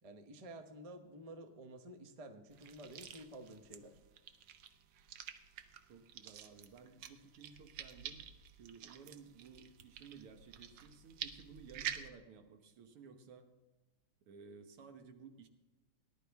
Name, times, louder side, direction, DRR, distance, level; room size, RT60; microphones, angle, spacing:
voice 1, 0.0-4.0, right 1 dB, 45° right, 6 dB, 0.4 m, -51 dB
sound 1, 2.5-12.1, right 9 dB, 65° right, 1.2 m, -49 dB
voice 2, 5.9-8.2 8.6-13.5 14.3-15.5, right 5 dB, 85° right, 7 dB, 2.1 m, -56 dB
19.0 x 11.0 x 3.5 m, 1.1 s
omnidirectional pair, 2.4 m